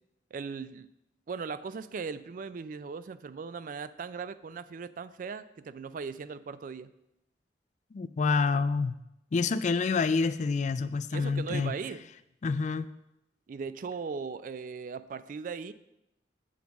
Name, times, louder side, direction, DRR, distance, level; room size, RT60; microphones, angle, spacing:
voice 1, 0.3-0.9 1.3-6.9 11.1-12.1 13.5-15.7, right 5 dB, 50° right, 0.3 m, -38 dB
voice 2, 7.9-8.9 9.3-11.7 12.4-12.9, left 4 dB, 40° left, 0.3 m, -27 dB
7.2 x 4.7 x 7.0 m
head